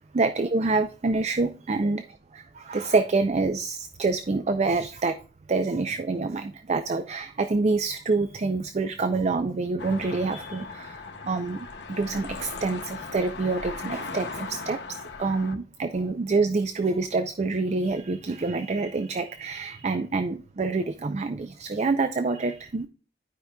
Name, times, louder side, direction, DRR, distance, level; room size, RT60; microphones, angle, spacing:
voice 1, 0.1-2.0 2.3-5.2 5.5-22.9, right 3 dB, 40° right, 10 dB, 0.4 m, -27 dB
sound 1, 9.8-15.5, left 4 dB, 75° left, 0.9 m, -38 dB
12.0 x 5.1 x 2.3 m, 0.36 s
head